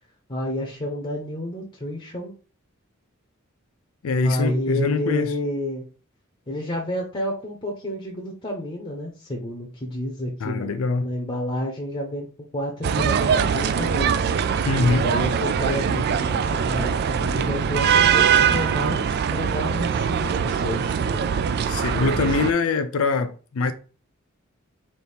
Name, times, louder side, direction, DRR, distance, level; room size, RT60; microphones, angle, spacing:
voice 1, 0.3-2.3 4.2-5.9 6.5-10.7 11.0-12.3 12.5-14.2 14.9-21.3 21.8-22.2, left 1 dB, 25° left, 0.8 m, -30 dB
voice 2, 4.0-5.3 10.4-11.1 14.7-15.1 21.7-23.7, left 4 dB, 80° left, 0.4 m, -23 dB
sound 1, 12.8-22.5, right 7 dB, 50° right, 0.3 m, -22 dB
4.2 x 2.7 x 3.4 m
head